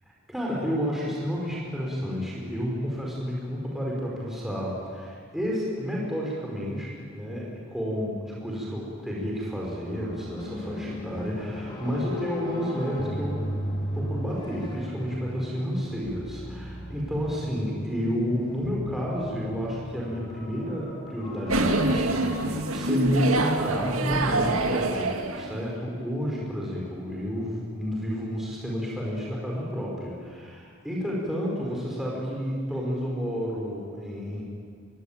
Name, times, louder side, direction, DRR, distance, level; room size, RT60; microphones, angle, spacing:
voice 1, 0.3-13.4 13.9-34.4, equal, ahead, -4 dB, 5.3 m, -31 dB
sound 1, 9.9-24.6, left 1 dB, 20° left, 4.7 m, -36 dB
sound 2, 21.5-25.6, right 2 dB, 85° right, 2.1 m, -25 dB
23.5 x 23.0 x 9.1 m, 2.2 s
head